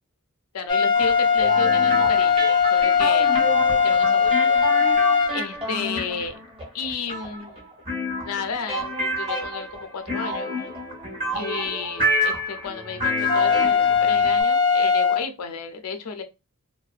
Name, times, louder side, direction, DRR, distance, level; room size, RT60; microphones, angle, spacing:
voice 1, 0.5-3.3 3.8-4.5 5.3-6.4 6.7-7.7 8.2-10.5 11.3-16.2, left 5 dB, 85° left, 6 dB, 0.5 m, -32 dB
sound 1, 0.7-5.3 13.3-15.2, left 6 dB, 20° left, 0.3 m, -19 dB
sound 2, 0.9-14.4, equal, 25° right, 0.7 m, -29 dB
2.4 x 2.1 x 2.4 m, 0.25 s
head